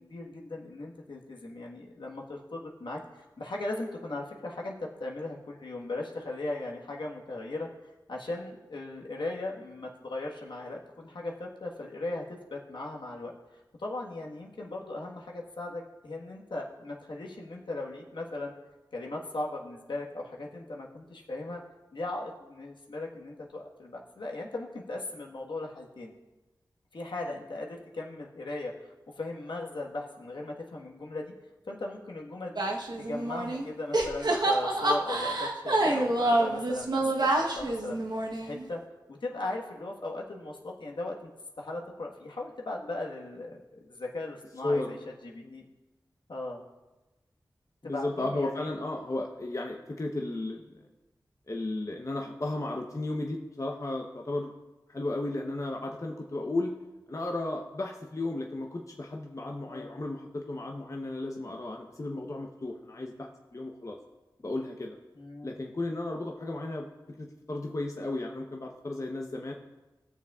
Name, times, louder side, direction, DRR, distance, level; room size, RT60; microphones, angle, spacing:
voice 1, 0.0-4.7 5.0-7.7 8.1-12.2 12.5-13.3 13.8-18.5 18.9-21.6 21.9-26.1 26.9-31.3 31.7-32.7 33.0-37.3 37.5-38.0 38.4-38.8 39.1-41.3 41.6-45.0 45.2-45.6 46.3-46.6 47.8-48.7 59.7-60.0 65.1-65.5, left 2 dB, 75° left, -1 dB, 1.4 m, -38 dB
sound 1, 32.6-33.7 33.9-38.6, right 1 dB, 60° right, 1.0 m, -27 dB
voice 2, 47.8-50.9 51.5-54.5 54.9-56.7 57.1-64.0 64.4-65.0 65.4-66.9 67.2-69.5, left 2 dB, 40° left, 0 dB, 0.9 m, -34 dB
19.0 x 6.7 x 2.4 m, 1.1 s
wide cardioid pair, 60°, 8 cm